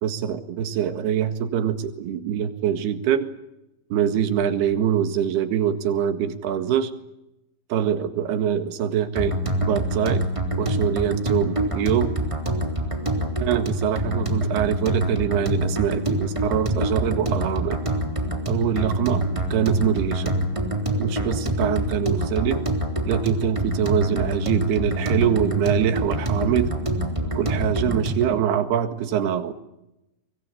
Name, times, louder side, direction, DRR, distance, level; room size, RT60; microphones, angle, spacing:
voice 1, 0.0-3.3 3.9-6.9 7.7-9.3 9.6-10.2 10.6-12.1 13.4-17.8 18.5-19.2 19.5-20.3 21.0-22.6 23.1-26.7 27.4-29.5, right 9 dB, 60° right, 10 dB, 3.3 m, -24 dB
sound 1, 9.2-28.4, right 1 dB, 10° right, 2.6 m, -26 dB
24.5 x 21.5 x 8.6 m, 0.89 s
omnidirectional pair, 5.8 m